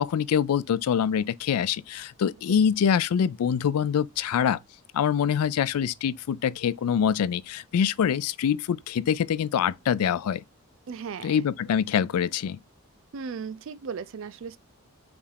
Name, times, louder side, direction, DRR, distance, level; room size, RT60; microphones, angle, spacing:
voice 1, 0.0-4.6 4.9-10.4 11.2-12.6, left 8 dB, 85° left, 0.3 m, -25 dB
voice 2, 10.9-11.4 13.1-14.6, right 6 dB, 60° right, 0.4 m, -36 dB
5.2 x 2.4 x 3.2 m
head